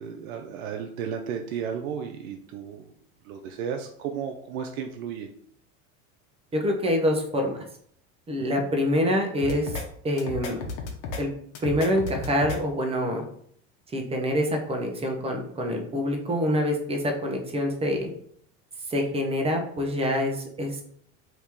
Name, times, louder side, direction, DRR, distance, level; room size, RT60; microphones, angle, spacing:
voice 1, 0.0-2.8 3.2-5.3, right 7 dB, 90° right, 4 dB, 0.5 m, -33 dB
voice 2, 6.5-7.6 8.3-10.6 11.2-11.3 11.6-13.2 13.9-18.1 18.9-20.8, equal, 15° right, 3 dB, 0.7 m, -26 dB
sound 1, 9.4-9.8 10.2-11.2 11.6-12.6, left 4 dB, 75° left, 0.9 m, -33 dB
2.9 x 2.8 x 3.5 m, 0.65 s
supercardioid pair, 105°, 39 cm